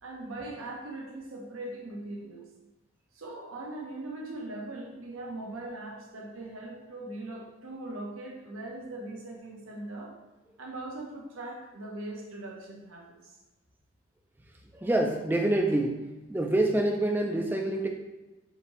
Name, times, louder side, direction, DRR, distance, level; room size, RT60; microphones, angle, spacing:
voice 1, 0.0-2.4 3.1-10.1 10.6-13.3, right 2 dB, 85° right, -1 dB, 0.8 m, -40 dB
voice 2, 14.7-16.0 16.3-17.9, right 1 dB, 10° right, 2 dB, 0.3 m, -26 dB
5.0 x 2.7 x 3.0 m, 1.1 s
head